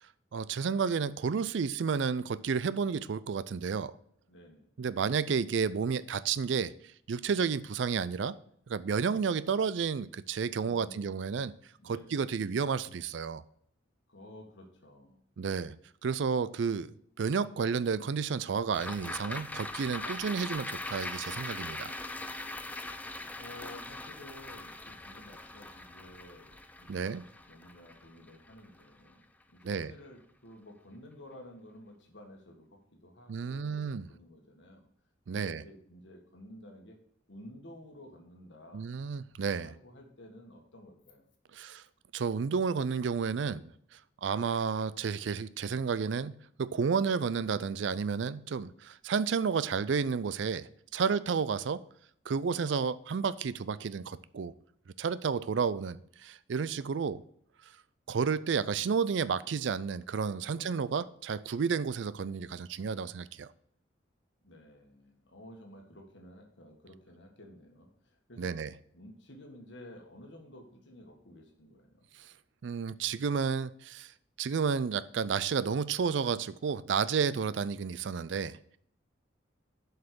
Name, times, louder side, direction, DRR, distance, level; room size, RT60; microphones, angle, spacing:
voice 1, 0.3-3.9 4.8-6.7 7.1-8.4 8.7-11.5 11.8-13.4 15.4-15.8 16.0-16.9 17.2-21.9 26.9-27.2 29.6-29.9 33.3-34.1 35.3-35.6 38.7-39.7 41.5-41.8 42.1-43.7 44.2-51.8 52.3-54.5 55.0-57.2 58.1-63.5 68.4-68.7 72.6-74.1 74.4-78.6, right 6 dB, 70° right, 17 dB, 0.4 m, -31 dB
voice 2, 4.3-4.7 10.6-11.1 11.8-12.1 14.1-15.2 22.5-27.1 27.5-34.9 35.3-37.0 37.3-38.9 39.6-41.3 51.4-51.5 60.5-61.0 64.4-68.6 68.9-72.1, left 1 dB, 70° left, 2 dB, 1.8 m, -52 dB
sound 1, 18.7-29.2 29.6-29.7, left 2 dB, 10° left, 0.5 m, -41 dB
7.7 x 5.5 x 6.1 m, 0.67 s
head